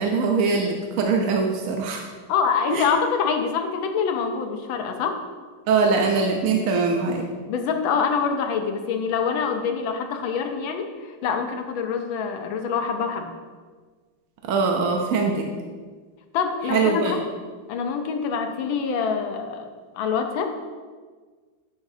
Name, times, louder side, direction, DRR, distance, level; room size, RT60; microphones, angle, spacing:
voice 1, 0.0-2.1 2.7-2.9 5.7-7.3 14.4-15.5 16.7-17.2, right 4 dB, 65° right, 2 dB, 0.9 m, -22 dB
voice 2, 2.3-5.2 7.4-13.3 16.3-17.2 17.7-19.7 19.9-20.7, left 6 dB, 90° left, 5 dB, 1.6 m, -25 dB
10.5 x 7.0 x 2.7 m, 1.5 s
omnidirectional pair, 2.1 m